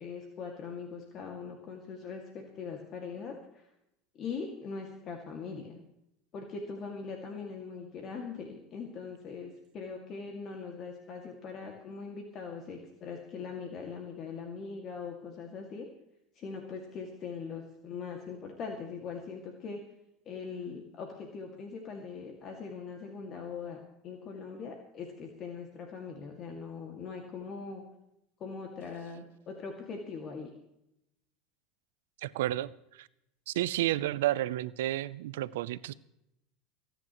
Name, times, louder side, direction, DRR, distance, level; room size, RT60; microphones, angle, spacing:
voice 1, 0.0-3.7 4.1-5.8 6.3-15.9 16.3-19.8 20.3-27.8 28.4-30.5, left 5 dB, 45° left, 2 dB, 2.2 m, -41 dB
voice 2, 32.2-33.1 33.5-35.9, right 14 dB, 85° right, 18 dB, 0.6 m, -31 dB
29.5 x 10.0 x 3.1 m, 0.83 s
supercardioid pair, 105°, 0 cm